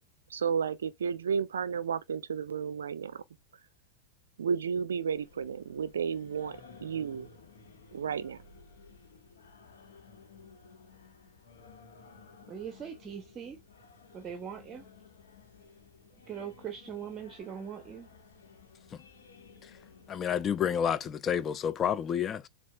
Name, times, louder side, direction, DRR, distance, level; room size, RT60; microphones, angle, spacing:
voice 1, 0.3-3.2 4.4-7.3 7.9-8.4, right 6 dB, 65° right, 0.4 m, -32 dB
Singing, 5.1-21.1, left 5 dB, 65° left, 1.3 m, -55 dB
voice 2, 12.5-13.6 14.1-14.8 16.3-18.1, right 8 dB, 25° right, 0.7 m, -41 dB
voice 3, 20.1-22.5, left 8 dB, 25° left, 0.4 m, -29 dB
7.2 x 2.4 x 2.2 m
figure-of-eight pair, 90°, 0 cm